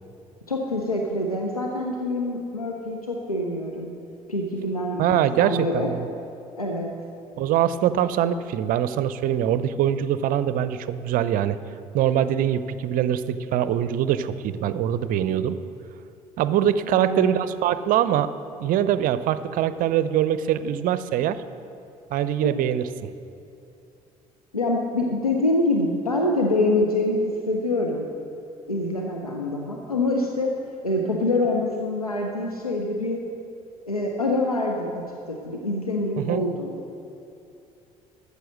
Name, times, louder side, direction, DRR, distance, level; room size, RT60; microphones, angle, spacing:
voice 1, 0.5-3.9 4.3-5.9 6.6-6.9 16.9-17.3 22.4-22.5 24.5-28.1 28.7-30.5 30.8-33.2 33.9-35.0 35.3-36.7, left 2 dB, 90° left, 1 dB, 0.6 m, -25 dB
voice 2, 5.0-6.1 7.4-11.6 11.9-15.6 16.4-18.3 18.6-21.4 22.1-22.9 36.2-36.4, right 10 dB, 50° right, 14 dB, 0.6 m, -23 dB
14.0 x 6.7 x 6.3 m, 2.7 s
figure-of-eight pair, 50°, 18 cm